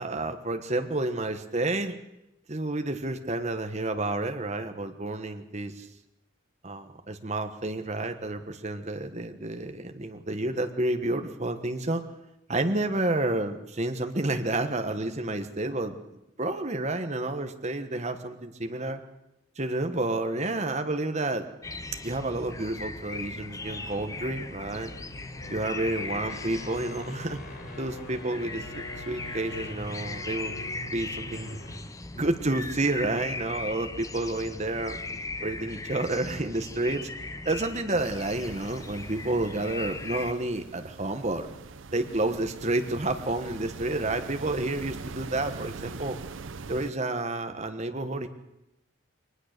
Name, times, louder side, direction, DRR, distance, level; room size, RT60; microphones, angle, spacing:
voice 1, 0.0-1.9 2.5-5.9 6.6-12.0 12.5-19.0 19.6-21.5 22.0-24.9 25.5-27.4 27.8-30.5 30.9-31.6 32.1-35.0 35.4-37.1 37.4-41.5 41.9-46.2 46.7-48.3, right 2 dB, 35° right, 7 dB, 1.4 m, -30 dB
sound 1, 21.6-40.3, left 3 dB, 15° left, 0.7 m, -39 dB
sound 2, 23.5-31.9, left 1 dB, 50° left, 4.4 m, -44 dB
sound 3, 38.0-46.9, right 4 dB, 70° right, 0.7 m, -42 dB
21.5 x 19.5 x 6.7 m, 0.91 s
head